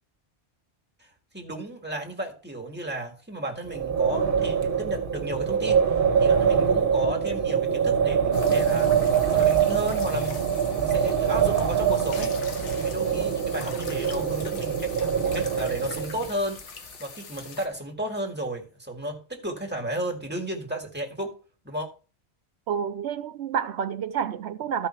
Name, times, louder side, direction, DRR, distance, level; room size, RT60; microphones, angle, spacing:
voice 1, 1.3-9.0 9.3-10.4 10.8-12.3 12.8-16.6 17.0-21.4 21.6-21.9, right 1 dB, 10° right, 1.9 m, -33 dB
Wind, 3.6-16.3, right 7 dB, 50° right, 1.2 m, -24 dB
sound 1, 8.3-17.7, left 5 dB, 85° left, 1.5 m, -43 dB
voice 2, 22.7-24.9, right 8 dB, 75° right, 0.9 m, -29 dB
13.0 x 5.3 x 4.4 m
omnidirectional pair, 1.2 m